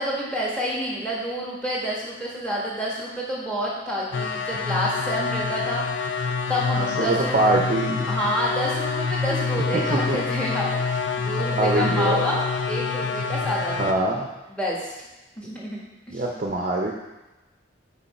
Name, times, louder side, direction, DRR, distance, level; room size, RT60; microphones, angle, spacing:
voice 1, 0.0-5.8 6.5-7.4 8.1-14.9 15.4-15.8 16.1-16.2, equal, 5° left, -4 dB, 1.2 m, -29 dB
sound 1, 4.1-13.9, left 4 dB, 70° left, 0.5 m, -27 dB
voice 2, 6.8-8.1 9.9-10.2 11.5-12.2 13.8-14.3 16.1-16.9, right 2 dB, 40° right, 0 dB, 0.5 m, -23 dB
5.6 x 4.7 x 4.1 m, 1.1 s
head